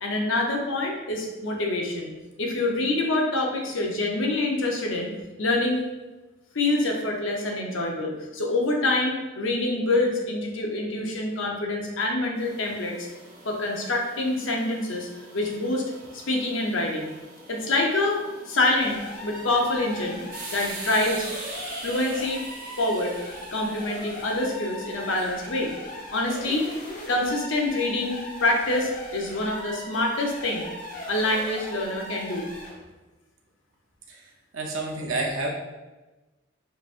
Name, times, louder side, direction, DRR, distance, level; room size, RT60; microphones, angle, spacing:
voice 1, 0.0-2.1 2.4-5.1 5.4-5.8 6.5-13.1 13.4-15.1 15.3-15.8 16.1-17.1 17.5-19.0 19.2-20.2 20.5-21.3 21.8-22.4 22.8-23.1 23.5-25.7 26.1-26.7 27.1-30.7 31.1-32.5, left 2 dB, 75° left, 0 dB, 0.8 m, -26 dB
sound 1, 12.4-26.9, right 2 dB, 45° right, 1.1 m, -43 dB
sound 2, 18.8-32.8, left 1 dB, 40° left, 1.0 m, -39 dB
voice 2, 34.5-35.5, right 2 dB, 80° right, -1 dB, 0.7 m, -29 dB
5.3 x 3.2 x 2.5 m, 1.1 s
head